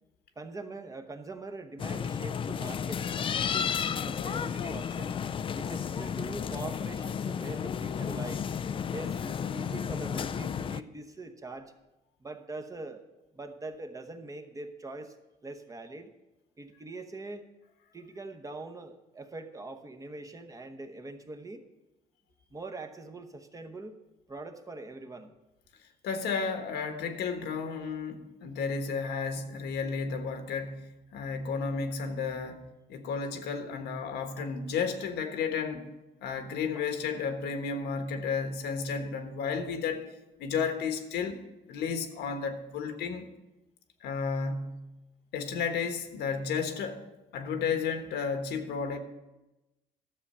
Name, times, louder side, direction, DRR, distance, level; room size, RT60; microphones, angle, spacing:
voice 1, 0.4-5.2 5.5-8.5 8.9-11.7 12.2-13.0 13.3-15.2 15.4-16.1 16.6-17.5 17.9-21.7 22.5-24.0 24.3-25.3 36.7-36.9, right 2 dB, 20° right, 5 dB, 0.9 m, -42 dB
sound 1, 1.8-10.8, left 7 dB, 30° left, 0.4 m, -33 dB
voice 2, 26.0-32.6 32.9-35.8 36.2-40.0 40.4-41.4 41.7-43.3 44.0-44.8 45.3-47.1 47.3-49.0, left 5 dB, 80° left, 7 dB, 1.3 m, -32 dB
12.5 x 7.2 x 5.5 m, 1.0 s
cardioid pair, 110°, 17 cm